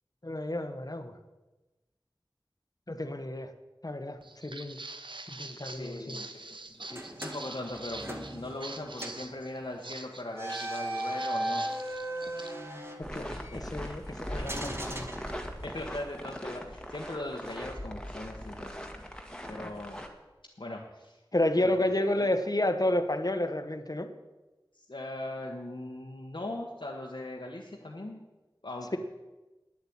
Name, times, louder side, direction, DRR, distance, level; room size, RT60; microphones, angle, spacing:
voice 1, 0.2-1.2 2.9-3.5 3.8-4.8 5.3-6.2 13.0-15.1 21.3-24.1, left 1 dB, 50° left, 8 dB, 1.2 m, -31 dB
Walk footsteps, 4.2-12.5, right 2 dB, 75° right, 0.8 m, -44 dB
voice 2, 5.6-12.0 13.3-14.6 15.6-19.2 19.5-20.0 20.6-21.2 21.6-22.3 24.7-28.2 28.6-29.0, left 1 dB, 75° left, -2 dB, 1.4 m, -40 dB
sound 1, 6.9-8.7 9.0-9.3 10.3-13.5 14.4-15.8, right 1 dB, 30° right, 1.9 m, -37 dB
sound 2, 13.0-20.1, equal, 10° left, 1.7 m, -40 dB
10.0 x 8.2 x 8.9 m, 1.1 s
wide cardioid pair, 40°, 8 cm